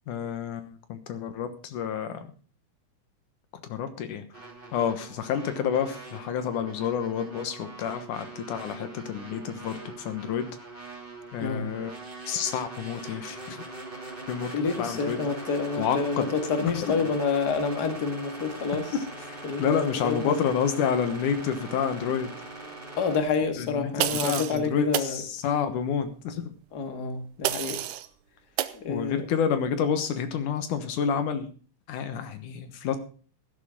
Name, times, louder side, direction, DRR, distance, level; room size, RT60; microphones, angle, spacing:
voice 1, 0.1-2.3 3.6-4.2 4.7-10.5 11.3-11.9 12.3-13.6 14.3-14.5 14.8-15.2 15.8-16.2 16.6-17.0 19.3-22.3 23.6-23.9 24.2-26.5 28.9-31.5 31.9-33.0, left 7 dB, 80° left, 9 dB, 2.8 m, -29 dB
sound 1, 4.3-23.2, right 2 dB, 15° right, 2.6 m, -42 dB
voice 2, 14.5-19.0 19.4-20.3 23.0-25.2 26.7-27.8 28.7-29.3, left 5 dB, 35° left, 7 dB, 2.2 m, -28 dB
sound 2, 24.0-24.6 24.9-25.1 27.4-28.1 28.6-28.8, right 13 dB, 90° right, 2.3 m, -29 dB
14.5 x 12.5 x 3.8 m, 0.39 s
omnidirectional pair, 3.6 m